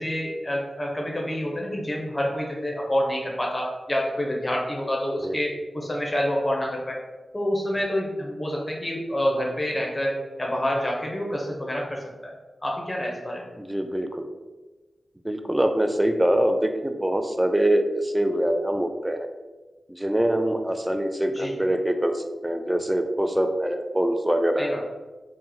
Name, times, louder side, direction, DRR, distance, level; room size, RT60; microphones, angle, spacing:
voice 1, 0.0-7.0 7.3-12.3 12.6-13.4 21.3-21.6 24.6-24.8, equal, 20° left, -1 dB, 0.6 m, -27 dB
voice 2, 13.6-14.2 15.2-19.3 19.9-24.7, right 1 dB, 10° right, 6 dB, 0.3 m, -24 dB
2.9 x 2.0 x 3.6 m, 1.2 s
cardioid pair, 65°, 0 cm